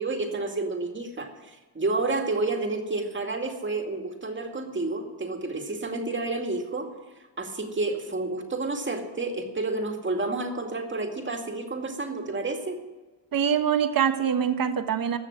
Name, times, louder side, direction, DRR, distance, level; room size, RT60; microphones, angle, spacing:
voice 1, 0.0-6.9 7.4-12.8, right 3 dB, 25° right, 3 dB, 2.3 m, -30 dB
voice 2, 13.3-15.2, right 8 dB, 45° right, 9 dB, 1.3 m, -24 dB
15.0 x 6.4 x 9.8 m, 1.2 s
cardioid pair, 95°, 48 cm